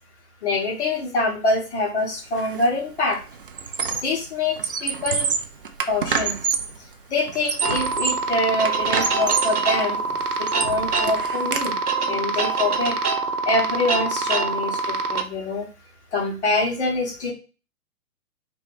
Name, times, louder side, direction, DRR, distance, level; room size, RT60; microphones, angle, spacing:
voice 1, 0.4-3.2 4.0-5.3 5.9-6.4 7.1-10.0 10.4-11.8 12.1-13.0 13.5-15.7 16.1-17.3, left 2 dB, 50° left, 0 dB, 1.5 m, -25 dB
Squeak, 2.4-2.7 3.0-4.2 4.5-6.8 7.3-8.3 8.7-9.6 10.1-11.7, right 6 dB, 40° right, 0.4 m, -27 dB
sound 1, 7.6-15.2, right 4 dB, 80° right, 0.8 m, -25 dB
3.1 x 3.0 x 4.6 m, 0.33 s
figure-of-eight pair, 125°, 44 cm